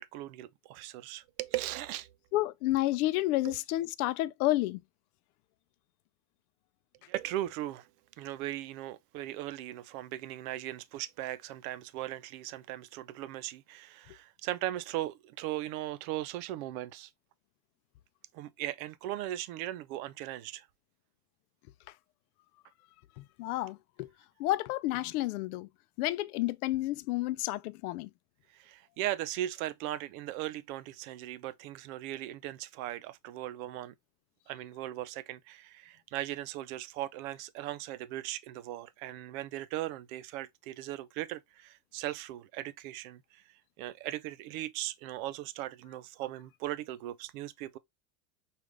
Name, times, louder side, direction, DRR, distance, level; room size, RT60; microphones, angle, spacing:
voice 1, 0.0-2.1 3.4-3.5 7.1-7.9 8.2-17.1 18.3-20.7 28.5-33.9 34.5-43.4 43.8-47.8, right 14 dB, 65° right, 0.6 m, -38 dB
voice 2, 2.3-4.8 23.2-24.1 24.4-25.7 26.0-28.1, left 16 dB, 75° left, 0.5 m, -30 dB
5.0 x 2.5 x 3.2 m
supercardioid pair, 110°, 45 cm